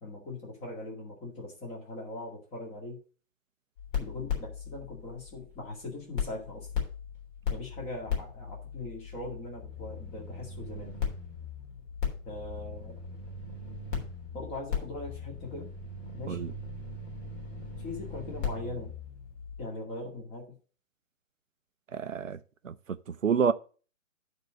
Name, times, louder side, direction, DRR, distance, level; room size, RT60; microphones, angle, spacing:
voice 1, 0.0-3.0 4.0-6.7 7.5-11.0 12.2-13.0 14.3-15.7 16.1-16.5 17.8-18.9 19.6-20.5, left 2 dB, 15° left, 2.2 m, -40 dB
sound 1, 3.8-5.8 6.2-19.6, left 6 dB, 40° left, 3.5 m, -37 dB
voice 2, 21.9-22.4 22.6-22.7 23.1-23.5, right 6 dB, 75° right, 0.7 m, -28 dB
9.6 x 4.0 x 6.3 m
figure-of-eight pair, 135°, 39 cm